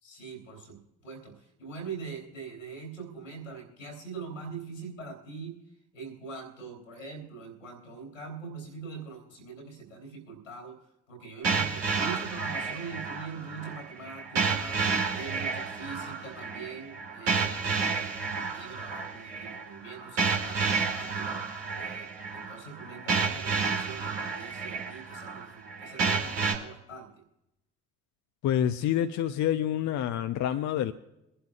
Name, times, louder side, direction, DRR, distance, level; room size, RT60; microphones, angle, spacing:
voice 1, 0.0-5.6 5.9-14.8 15.1-18.1 18.5-21.4 21.7-27.1, right 4 dB, 90° left, 1 dB, 3.3 m, -43 dB
sound 1, 11.4-26.5, right 5 dB, 80° right, 2.2 m, -31 dB
voice 2, 28.4-30.9, left 10 dB, 50° left, 8 dB, 0.7 m, -27 dB
24.0 x 11.0 x 2.4 m, 0.86 s
figure-of-eight pair, 45°, 37 cm